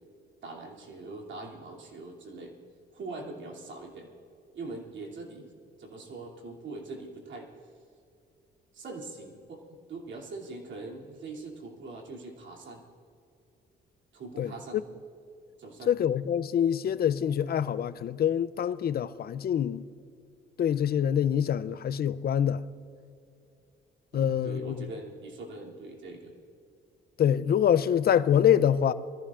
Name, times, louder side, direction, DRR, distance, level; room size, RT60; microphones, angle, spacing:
voice 1, 0.4-2.6 2.9-4.2 4.5-5.5 5.8-7.5 8.7-12.8 14.1-14.8 15.6-15.9 24.1-26.3, right 3 dB, 65° right, 2.8 m, -42 dB
voice 2, 14.4-14.8 15.9-19.9 20.6-22.6 24.1-24.9 27.2-28.9, left 9 dB, 50° left, 0.5 m, -25 dB
23.0 x 14.5 x 2.5 m
cardioid pair, 90°, 20 cm